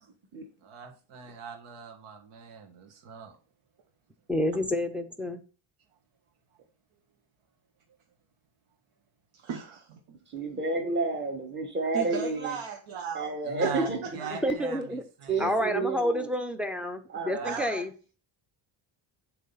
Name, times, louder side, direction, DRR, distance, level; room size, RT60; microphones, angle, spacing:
voice 1, 0.6-3.4 13.4-14.8 15.2-15.5 17.3-17.7, right 6 dB, 85° right, 1.6 m, -41 dB
voice 2, 4.3-5.4 14.4-15.0 15.4-17.9, equal, ahead, 0.4 m, -29 dB
voice 3, 9.3-10.0 11.9-13.3 13.6-13.7 14.0-14.4 17.4-17.8, right 6 dB, 70° right, 1.2 m, -36 dB
voice 4, 10.3-12.6 13.1-14.0 14.3-14.5 15.3-16.3 17.1-17.5, right 3 dB, 20° right, 1.3 m, -30 dB
7.4 x 3.4 x 5.5 m
cardioid pair, 160°, 49 cm